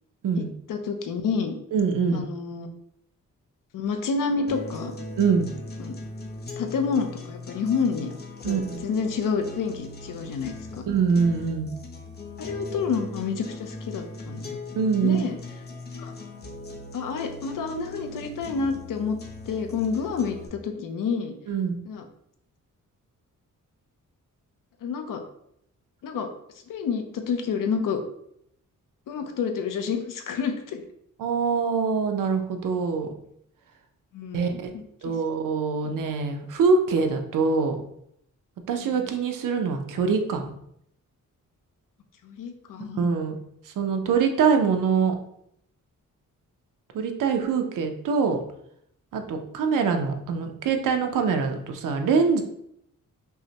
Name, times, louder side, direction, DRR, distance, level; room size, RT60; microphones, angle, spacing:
voice 1, 0.4-1.5 2.1-2.7 3.7-4.9 5.8-5.9 6.6-8.1 8.5-10.8 12.4-14.4 15.0-15.4 16.0-16.1 16.9-19.2 19.5-21.3 21.9-22.0 24.8-25.2 26.0-26.3 26.7-28.0 29.1-30.8 34.1-35.1 35.8-36.0 38.8-38.9 42.2-43.1, left 5 dB, 80° left, 6 dB, 0.6 m, -29 dB
voice 2, 1.7-2.2 5.2-5.5 8.4-8.8 10.9-11.7 14.7-15.4 21.5-21.8 31.2-33.1 34.3-34.7 35.0-37.8 38.7-40.5 43.0-43.4 43.8-45.1 46.9-48.4 49.1-52.4, right 5 dB, 75° right, 5 dB, 0.6 m, -24 dB
sound 1, 4.5-20.5, left 2 dB, 30° left, 0.5 m, -39 dB
5.5 x 2.1 x 2.8 m, 0.72 s
wide cardioid pair, 165°, 32 cm